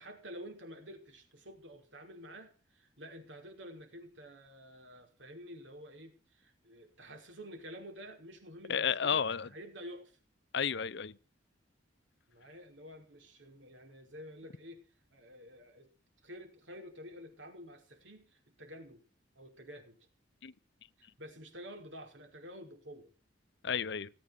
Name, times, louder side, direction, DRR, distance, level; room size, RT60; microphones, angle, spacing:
voice 1, 0.0-10.2 12.3-14.8 15.1-15.9 16.2-19.0 19.4-20.0 21.0-23.1, equal, 70° right, 5.2 m, -50 dB
voice 2, 8.7-9.5 10.5-11.2 20.4-20.5 23.6-24.1, left 7 dB, 65° left, 0.7 m, -32 dB
18.5 x 8.7 x 8.0 m
head